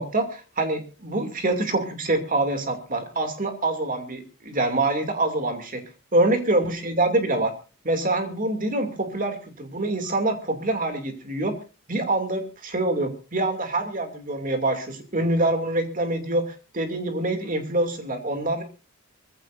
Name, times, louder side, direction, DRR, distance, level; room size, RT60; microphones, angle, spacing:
voice 1, 0.0-5.8 6.1-7.5 7.8-11.5 11.9-18.6, right 2 dB, 40° right, 6 dB, 2.7 m, -25 dB
24.0 x 15.5 x 2.6 m, 0.32 s
head